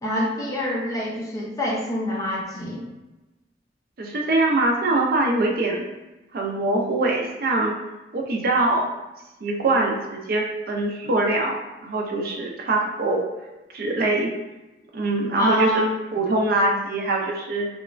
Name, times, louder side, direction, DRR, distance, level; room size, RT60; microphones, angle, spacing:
voice 1, 0.0-2.9 15.3-15.8, equal, 20° left, -3 dB, 0.5 m, -26 dB
voice 2, 4.0-5.8 6.3-7.7 8.1-8.9 9.4-13.3 13.7-14.3 14.9-15.8 16.1-17.7, right 2 dB, 55° right, 0 dB, 0.4 m, -23 dB
2.9 x 2.2 x 2.4 m, 1.1 s
head